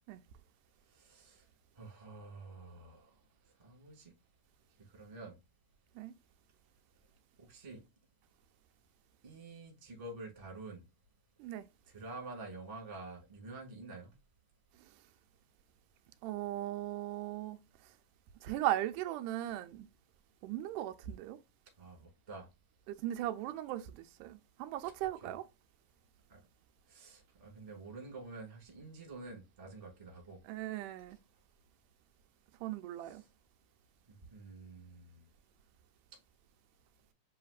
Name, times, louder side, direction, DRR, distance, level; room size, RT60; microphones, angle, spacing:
voice 1, 0.9-1.4 1.8-3.1 3.6-4.1 4.9-5.3 7.4-7.8 9.2-10.8 11.9-14.2 21.8-22.5 25.2-25.4 26.3-26.4 26.9-30.4 33.0-33.2 34.1-35.2, right 3 dB, 20° right, 1.0 m, -48 dB
voice 2, 16.2-17.6 18.4-19.9 20.4-21.4 22.9-25.4 30.5-31.2 32.6-33.2, right 13 dB, 90° right, 2.1 m, -38 dB
7.4 x 2.9 x 2.4 m
omnidirectional pair, 3.6 m